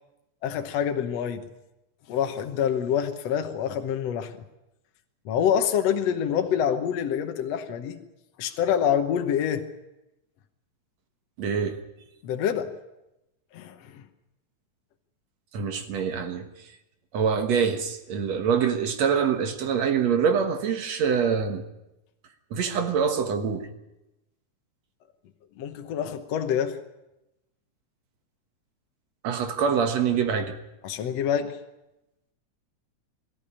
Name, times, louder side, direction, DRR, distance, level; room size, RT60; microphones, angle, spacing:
voice 1, 0.4-1.5 2.1-4.3 5.3-8.0 8.4-9.7 12.2-12.7 13.5-14.0 25.6-26.8 30.8-31.6, left 8 dB, 65° left, 6 dB, 2.2 m, -26 dB
voice 2, 11.4-11.8 15.5-16.5 17.1-21.6 22.5-23.7 29.2-30.5, right 6 dB, 65° right, 6 dB, 2.5 m, -25 dB
22.5 x 14.0 x 10.0 m, 0.94 s
omnidirectional pair, 3.3 m